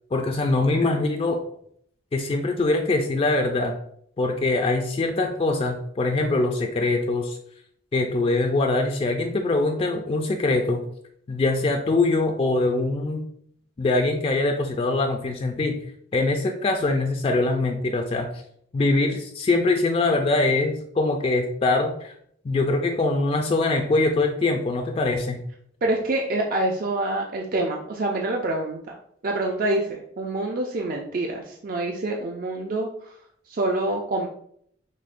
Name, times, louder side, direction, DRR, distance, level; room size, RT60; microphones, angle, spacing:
voice 1, 0.1-1.4 2.1-3.8 4.2-7.4 7.9-10.8 11.3-13.3 13.8-15.8 16.1-18.3 18.7-22.1 22.4-25.4, left 2 dB, 30° left, 4 dB, 0.3 m, -23 dB
voice 2, 25.8-28.9 29.2-33.2 33.5-34.3, right 2 dB, 50° right, 1 dB, 0.4 m, -26 dB
6.2 x 2.1 x 2.5 m, 0.66 s
head